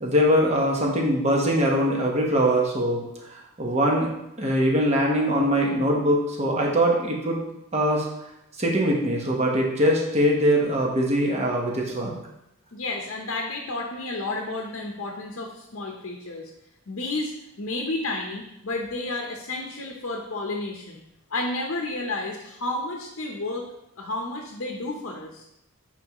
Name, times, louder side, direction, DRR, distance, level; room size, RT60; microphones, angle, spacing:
voice 1, 0.0-3.0 3.3-4.1 4.4-7.4 7.7-8.1 8.6-12.1, equal, 30° right, -1 dB, 1.1 m, -22 dB
voice 2, 12.7-16.5 16.9-21.0 21.3-23.7 24.0-25.4, left 2 dB, 60° left, 1 dB, 0.8 m, -31 dB
7.8 x 4.6 x 2.9 m, 0.84 s
head